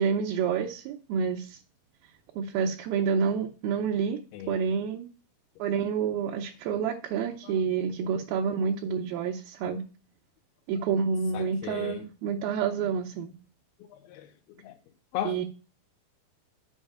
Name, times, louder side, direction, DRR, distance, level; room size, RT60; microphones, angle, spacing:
voice 1, 0.0-1.6 2.4-4.2 4.5-5.1 5.6-9.8 10.7-13.4 15.3-15.4, right 6 dB, 80° right, 2.4 m, -28 dB
voice 2, 11.3-12.1 13.9-14.8 15.1-15.4, left 11 dB, 85° left, 2.6 m, -37 dB
6.4 x 5.2 x 6.3 m
omnidirectional pair, 4.4 m